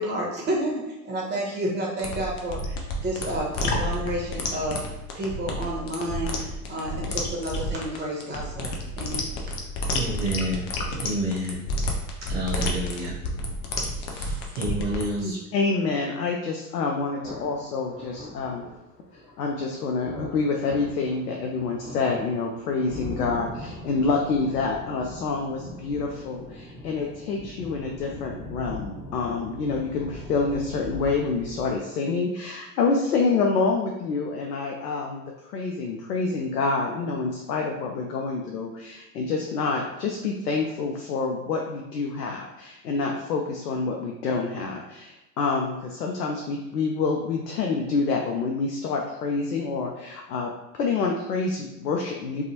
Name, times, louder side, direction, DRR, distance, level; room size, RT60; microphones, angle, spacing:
voice 1, 0.0-4.8 5.1-9.3, right 1 dB, 20° right, -2 dB, 1.0 m, -30 dB
sound 1, 2.0-15.0, left 1 dB, 35° left, 0.5 m, -30 dB
voice 2, 9.9-10.7 11.0-11.6 12.2-13.2 13.9-15.4, right 1 dB, 50° right, -4 dB, 0.8 m, -29 dB
voice 3, 15.2-18.6 19.4-35.2 35.5-52.4, left 4 dB, 80° left, 0 dB, 0.5 m, -27 dB
sound 2, 17.2-31.7, left 1 dB, 15° left, 1.0 m, -40 dB
2.5 x 2.3 x 2.8 m, 0.95 s
figure-of-eight pair, 80°, 46 cm